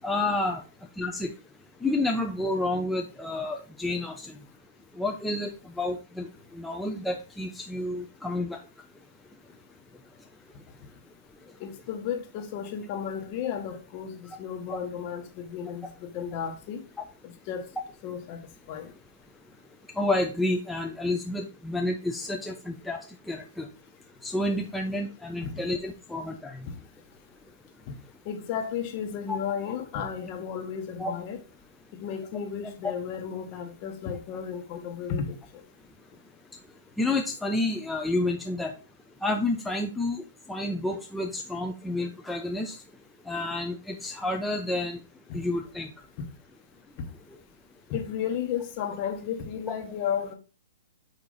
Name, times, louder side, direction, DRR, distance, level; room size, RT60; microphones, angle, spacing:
voice 1, 0.0-0.6 1.0-1.3 1.8-4.3 5.0-5.5 5.8-6.3 6.5-8.6 14.7-14.8 20.0-23.0 23.3-23.7 24.2-26.6 31.0-31.1 37.0-38.7 39.2-40.2 40.5-42.8 43.3-45.0 45.3-45.9, left 2 dB, 5° left, 0.6 m, -29 dB
voice 2, 11.6-16.8 17.2-17.7 18.0-18.4 18.7-18.9 25.4-25.5 26.7-26.8 28.2-31.4 31.9-35.7 45.3-45.4 46.2-46.3 47.0-47.1 47.9-50.3, left 7 dB, 40° left, 1.4 m, -33 dB
8.5 x 2.9 x 4.0 m
hypercardioid pair, 135°, 0 cm